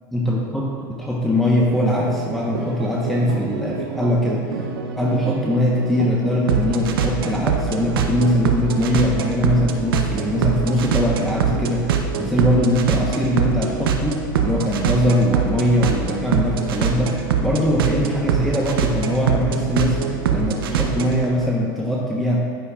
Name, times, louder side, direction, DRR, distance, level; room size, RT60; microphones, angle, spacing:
voice 1, 0.1-0.7 1.0-4.4 5.0-22.4, equal, ahead, -4 dB, 1.0 m, -21 dB
sound 1, 1.6-21.3, right 6 dB, 80° right, 0.7 m, -24 dB
10.0 x 9.4 x 2.4 m, 2.1 s
hypercardioid pair, 95°, 12 cm